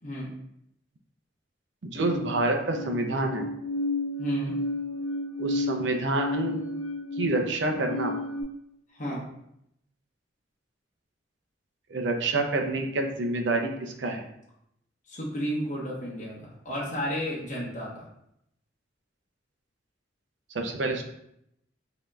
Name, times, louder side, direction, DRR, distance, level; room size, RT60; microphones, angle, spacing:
voice 1, 0.0-0.3 4.2-4.5 8.9-9.3 15.1-18.1, equal, 40° left, -5 dB, 1.0 m, -32 dB
voice 2, 1.8-3.5 5.4-6.6 7.2-8.2 11.9-14.2 20.5-21.0, right 2 dB, 70° right, 3 dB, 0.6 m, -27 dB
sound 1, 2.0-8.4, left 2 dB, 15° left, 0.8 m, -32 dB
5.1 x 2.9 x 2.3 m, 0.78 s
head